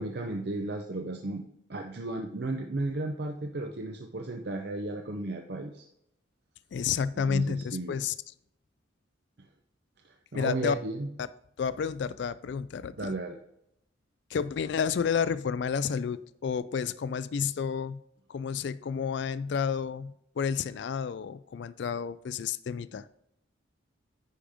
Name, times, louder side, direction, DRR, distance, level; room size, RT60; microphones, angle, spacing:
voice 1, 0.0-5.9 7.3-8.0 10.0-11.1 13.0-13.4, right 2 dB, 55° right, 3 dB, 0.6 m, -34 dB
voice 2, 6.7-8.1 10.3-10.8 11.2-11.3 11.6-13.1 14.3-18.0 18.3-23.1, left 6 dB, 60° left, 16 dB, 0.3 m, -30 dB
9.9 x 5.1 x 3.5 m, 0.77 s
head